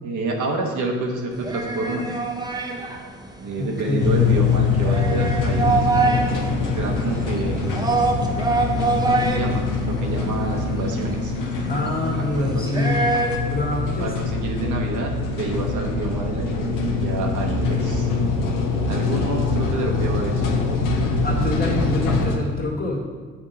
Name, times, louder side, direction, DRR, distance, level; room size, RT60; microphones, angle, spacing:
voice 1, 0.0-2.1 3.4-6.3 6.7-8.1 9.0-11.3 12.1-13.1 14.0-18.1 18.9-20.5 21.7-21.9, right 2 dB, 65° right, 1 dB, 1.0 m, -28 dB
sound 1, 1.3-13.4, right 3 dB, 15° right, 0.8 m, -26 dB
voice 2, 3.6-4.2 11.6-14.1 21.2-23.0, left 1 dB, 30° left, -2 dB, 1.6 m, -26 dB
sound 2, 4.0-22.4, left 4 dB, 75° left, 0.9 m, -24 dB
6.9 x 2.9 x 5.5 m, 1.5 s
supercardioid pair, 70°, 32 cm